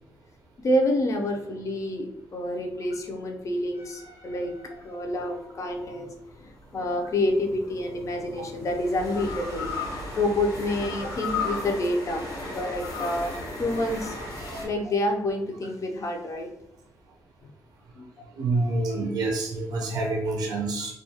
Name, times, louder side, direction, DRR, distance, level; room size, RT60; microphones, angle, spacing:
voice 1, 0.6-4.5 4.8-6.1 6.4-9.7 10.2-13.3 13.6-14.2 14.6-16.5 18.0-18.1, left 1 dB, 50° left, 3 dB, 0.5 m, -28 dB
sound 1, 3.7-5.3 7.1-14.7, left 3 dB, 85° left, 0.9 m, -35 dB
voice 2, 18.4-20.9, right 2 dB, 70° right, 1 dB, 0.4 m, -27 dB
2.3 x 2.2 x 2.7 m, 0.80 s
cardioid pair, 90°, 7 cm